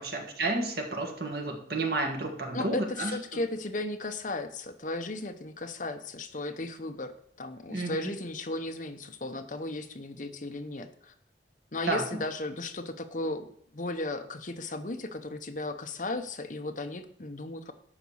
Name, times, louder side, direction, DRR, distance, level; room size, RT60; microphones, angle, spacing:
voice 1, 0.0-3.2 7.7-8.1 11.9-12.0, right 2 dB, 60° right, 2 dB, 1.6 m, -31 dB
voice 2, 2.5-11.1 11.7-13.5 13.7-17.7, left 2 dB, 45° left, 5 dB, 0.8 m, -35 dB
11.0 x 4.1 x 7.1 m, 0.65 s
head